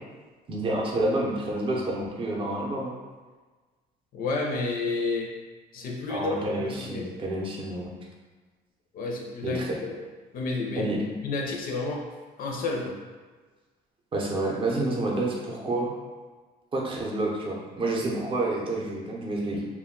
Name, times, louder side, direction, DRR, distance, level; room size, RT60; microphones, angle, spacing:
voice 1, 0.5-2.9 6.1-7.9 9.4-9.8 10.8-11.0 14.1-15.9 16.7-19.6, right 2 dB, 30° right, -2 dB, 0.6 m, -29 dB
voice 2, 4.1-5.3 5.7-7.1 8.9-9.6 10.3-10.9 11.2-12.1 12.4-13.0 19.5-19.7, left 3 dB, 60° left, 0 dB, 0.5 m, -30 dB
2.2 x 2.2 x 3.6 m, 1.4 s
cardioid pair, 110°, 17 cm